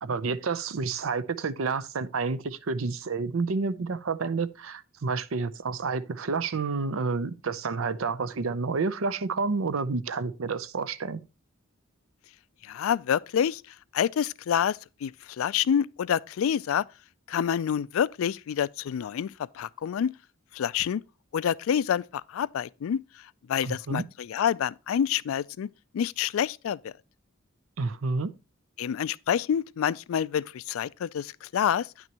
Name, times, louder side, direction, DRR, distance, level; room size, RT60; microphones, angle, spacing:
voice 1, 0.0-11.2 23.6-24.0 27.8-28.3, right 4 dB, 75° right, 0.6 m, -29 dB
voice 2, 12.6-13.6 13.9-16.8 17.3-20.1 20.5-21.0 21.3-23.0 23.5-25.7 25.9-26.9 28.8-31.9, left 8 dB, 80° left, 0.3 m, -27 dB
9.5 x 6.1 x 2.9 m
head